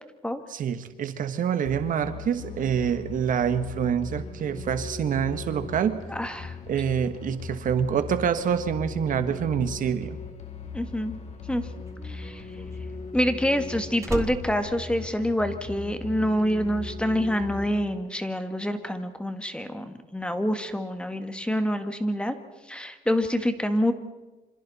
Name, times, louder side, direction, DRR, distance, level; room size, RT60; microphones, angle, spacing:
voice 1, 0.5-6.0 6.7-10.2, right 8 dB, 55° right, 10 dB, 1.3 m, -26 dB
sound 1, 1.6-17.6, left 4 dB, 40° left, 2.6 m, -39 dB
voice 2, 6.1-6.5 10.7-11.2 11.5-11.7 12.0-12.4 13.1-22.3 22.7-23.9, equal, 5° left, 8 dB, 1.6 m, -27 dB
Slam, 11.1-15.8 16.1-16.5, right 3 dB, 15° right, 1.7 m, -38 dB
27.0 x 26.0 x 4.2 m, 1.2 s
cardioid pair, 110°, 17 cm